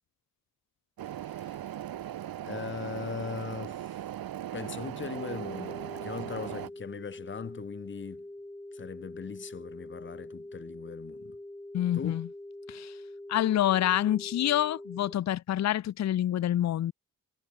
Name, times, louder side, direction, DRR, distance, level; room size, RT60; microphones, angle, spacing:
sound 1, 1.0-6.7, right 12 dB, 80° right, 1.0 m, -38 dB
voice 1, 1.3-1.6 2.4-4.0 4.5-8.2 8.7-11.4 11.9-12.2, left 6 dB, 35° left, 1.1 m, -40 dB
sound 2, 5.1-15.1, left 1 dB, 5° left, 1.8 m, -44 dB
voice 2, 11.7-12.3 12.7-12.9 13.3-16.9, left 12 dB, 50° left, 0.5 m, -27 dB
wide cardioid pair, 145°, 35 cm